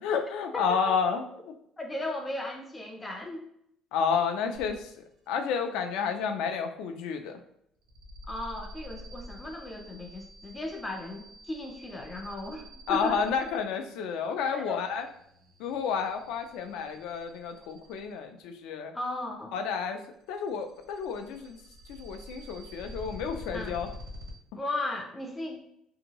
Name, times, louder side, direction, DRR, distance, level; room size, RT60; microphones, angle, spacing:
voice 1, 0.0-1.5 3.9-7.4 12.9-15.1 15.6-18.9 19.5-21.6 21.9-23.9, left 6 dB, 85° left, 6 dB, 0.4 m, -31 dB
voice 2, 0.5-0.9 1.8-3.4 8.3-13.2 14.5-14.8 18.9-19.5 23.5-23.8 24.5-25.6, left 1 dB, 10° left, 2 dB, 0.3 m, -36 dB
sound 1, 4.5-5.1 5.5-6.0 7.8-18.3 20.2-24.3, left 1 dB, 70° right, 0.9 m, -47 dB
2.8 x 2.6 x 2.8 m, 0.73 s
cardioid pair, 170°, 0 cm